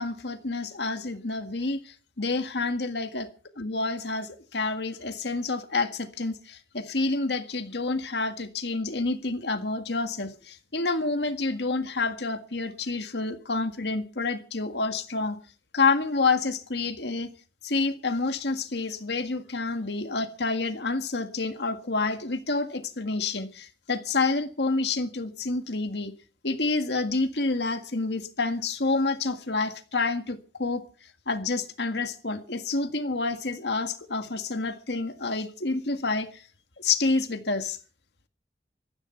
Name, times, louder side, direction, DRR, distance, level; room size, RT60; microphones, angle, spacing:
voice 1, 0.0-3.3 3.6-15.4 15.7-17.3 17.6-26.1 26.4-30.8 31.3-36.4 36.8-37.8, left 3 dB, 70° left, 1.8 m, -28 dB
15.0 x 14.5 x 5.7 m
head